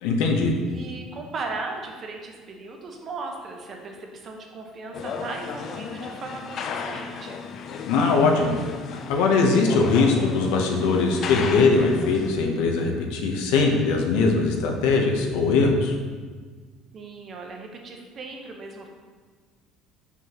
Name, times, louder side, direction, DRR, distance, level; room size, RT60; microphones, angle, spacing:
voice 1, 0.0-0.5 7.8-8.6 8.9-15.9, left 4 dB, 90° left, 2 dB, 0.9 m, -21 dB
voice 2, 0.7-7.5 16.9-18.9, right 3 dB, 35° right, 2 dB, 0.8 m, -37 dB
sound 1, 4.9-12.3, left 5 dB, 45° left, 0.4 m, -34 dB
5.9 x 5.6 x 3.0 m, 1.5 s
cardioid pair, 135°, 0 cm